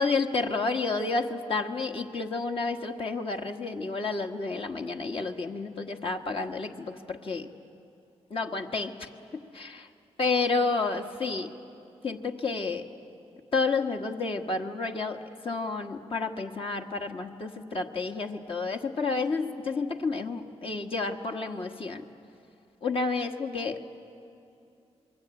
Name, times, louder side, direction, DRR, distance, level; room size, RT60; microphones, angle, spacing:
voice 1, 0.0-7.5 8.3-9.9 10.2-11.5 12.0-12.9 13.5-22.0 22.8-23.8, left 4 dB, 55° left, 3 dB, 1.5 m, -30 dB
27.0 x 22.0 x 9.0 m, 2.7 s
cardioid pair, 90°, 11 cm